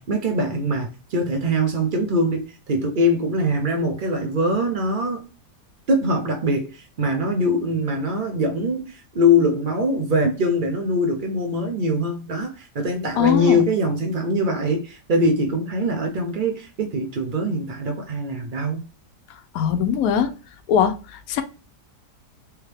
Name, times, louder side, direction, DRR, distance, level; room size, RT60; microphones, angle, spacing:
voice 1, 0.0-5.3 5.9-18.8, left 1 dB, 85° right, 0.4 m, -23 dB
voice 2, 13.2-13.6 19.5-20.3 20.7-21.4, left 8 dB, 70° left, 0.9 m, -21 dB
3.5 x 3.1 x 3.1 m
omnidirectional pair, 1.8 m